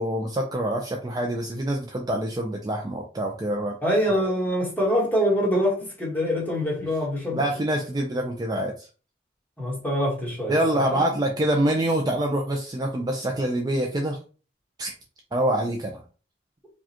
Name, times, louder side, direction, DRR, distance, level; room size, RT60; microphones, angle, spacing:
voice 1, 0.0-3.7 7.3-8.9 10.5-14.2 14.8-14.9 15.3-16.0, right 1 dB, 20° right, 0.4 m, -25 dB
voice 2, 3.8-7.4 9.6-11.0, equal, 10° left, 1.4 m, -25 dB
4.7 x 2.3 x 2.8 m
head